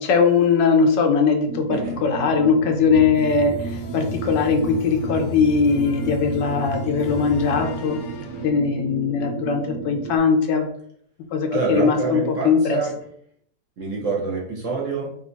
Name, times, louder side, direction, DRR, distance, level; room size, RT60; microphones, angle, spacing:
voice 1, 0.0-8.0 8.4-10.7 11.3-12.8, left 5 dB, 85° left, 4 dB, 1.4 m, -20 dB
sound 1, 1.5-10.2, right 6 dB, 75° right, 1.1 m, -34 dB
voice 2, 1.7-2.0 7.0-7.1 11.5-13.0 13.8-15.2, right 4 dB, 50° right, -3 dB, 1.2 m, -27 dB
sound 2, 2.9-8.5, left 2 dB, 65° left, 0.7 m, -34 dB
5.1 x 2.8 x 2.7 m, 0.63 s
omnidirectional pair, 1.9 m